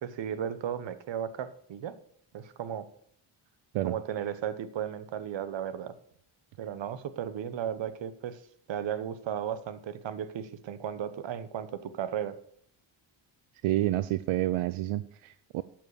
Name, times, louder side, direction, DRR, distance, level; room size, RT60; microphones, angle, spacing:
voice 1, 0.0-2.0 2.3-2.9 3.8-5.9 6.6-8.4 8.7-12.3, right 9 dB, 60° right, 13 dB, 1.2 m, -35 dB
voice 2, 13.6-15.6, right 15 dB, 90° right, 15 dB, 0.6 m, -29 dB
12.5 x 7.6 x 6.6 m, 0.65 s
cardioid pair, 115°, 49 cm